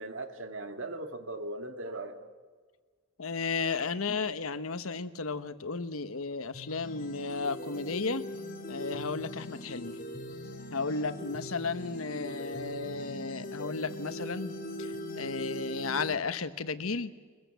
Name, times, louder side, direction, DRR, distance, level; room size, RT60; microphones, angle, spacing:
voice 1, 0.0-2.3, right 2 dB, 65° right, 2.0 m, -39 dB
voice 2, 3.2-8.3 8.7-10.0 10.7-14.5 14.8-17.1, left 4 dB, 85° left, 1.1 m, -34 dB
sound 1, 6.5-16.1, left 1 dB, 40° left, 2.2 m, -41 dB
22.5 x 21.5 x 8.2 m
head